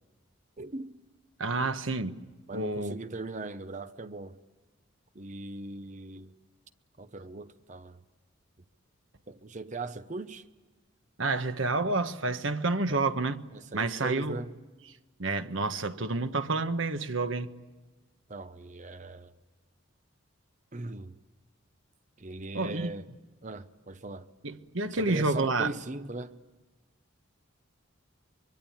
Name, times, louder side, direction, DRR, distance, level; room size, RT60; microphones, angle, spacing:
voice 1, 0.6-1.0 1.6-1.7 2.5-4.4 5.1-6.3 7.0-8.0 9.3-10.5 12.9-13.0 13.5-14.5 18.3-19.3 20.7-21.2 22.2-23.1 23.4-24.3 24.9-26.4, right 2 dB, 35° right, 0.8 m, -40 dB
voice 2, 1.4-2.2 2.5-3.0 11.2-13.4 13.7-14.4 15.2-17.5 22.5-22.9 24.4-25.7, right 3 dB, 70° right, 1.3 m, -29 dB
25.0 x 24.0 x 8.7 m
head